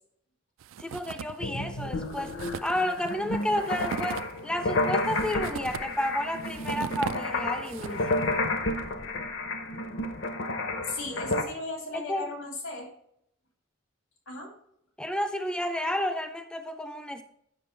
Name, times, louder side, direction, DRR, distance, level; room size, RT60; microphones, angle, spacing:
sound 1, 0.6-1.5 1.8-1.9 2.1-8.2, right 7 dB, 70° right, 0.3 m, -39 dB
voice 1, 0.8-2.3 2.6-8.4 11.9-12.3 15.0-17.2, left 1 dB, 5° left, 6 dB, 0.4 m, -31 dB
sound 2, 1.4-11.4, left 2 dB, 60° left, 0.8 m, -31 dB
voice 2, 10.9-12.9 14.3-14.5, left 2 dB, 90° left, 1 dB, 2.9 m, -36 dB
9.1 x 6.0 x 4.4 m, 0.73 s
head